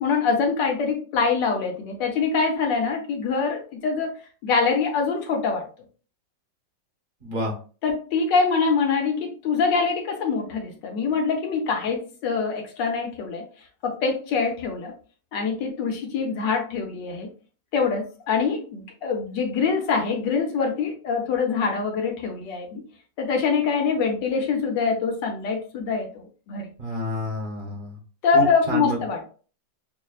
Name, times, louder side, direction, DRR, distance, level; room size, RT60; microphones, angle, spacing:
voice 1, 0.0-4.2 4.4-5.6 7.8-13.4 13.8-14.9 15.3-17.3 17.7-22.8 23.2-26.7 28.2-29.2, left 5 dB, 75° left, 2 dB, 1.4 m, -24 dB
voice 2, 7.2-7.5 26.8-28.0 28.3-29.0, right 1 dB, 35° right, 0 dB, 1.0 m, -29 dB
6.2 x 2.1 x 2.3 m, 0.38 s
omnidirectional pair, 2.0 m